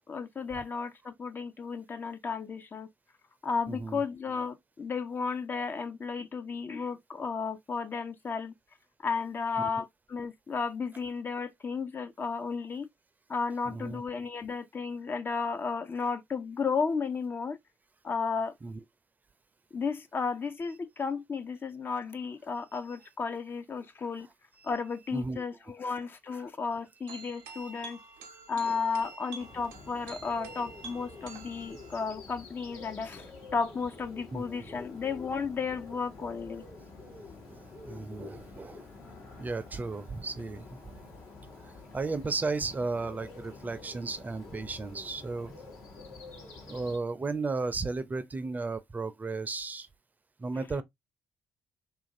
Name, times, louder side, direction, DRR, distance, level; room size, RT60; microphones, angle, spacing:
voice 1, 0.1-2.9 3.4-8.5 9.0-12.9 13.3-17.6 18.0-18.5 19.7-24.3 24.6-28.0 28.5-36.6, left 5 dB, 35° left, 0.4 m, -33 dB
voice 2, 3.7-4.0 9.6-9.8 13.7-14.0 18.6-18.8 23.8-23.9 24.6-24.7 25.1-25.4 28.6-28.8 34.3-34.9 37.5-38.8 39.4-40.8 41.6-45.6 46.7-49.9 50.4-50.8, right 3 dB, 30° right, 0.5 m, -35 dB
sound 1, 27.1-32.1, right 4 dB, 80° right, 0.6 m, -48 dB
Bird, 29.4-47.0, left 3 dB, 70° left, 1.0 m, -48 dB
2.8 x 2.5 x 2.5 m
hypercardioid pair, 50°, 6 cm